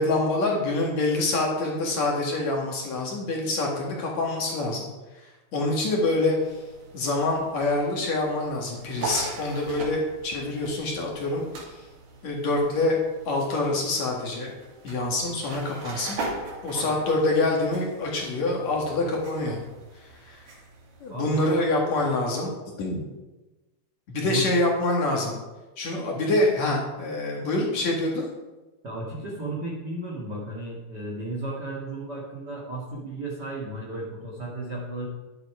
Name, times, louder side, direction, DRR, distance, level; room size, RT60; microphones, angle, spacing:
voice 1, 0.0-4.9 5.5-6.4 6.9-11.8 12.2-14.5 14.8-16.2 16.6-19.6 20.3-20.4 21.0-22.5 22.8-23.0 24.1-25.4 25.8-28.3, left 2 dB, 50° left, -1 dB, 2.5 m, -26 dB
sound 1, 6.4-22.4, right 2 dB, 65° right, 4.0 m, -41 dB
voice 2, 21.1-21.5 24.2-24.5 28.8-35.0, right 2 dB, 50° right, -4 dB, 1.2 m, -34 dB
11.0 x 9.8 x 4.9 m, 1.1 s
omnidirectional pair, 5.1 m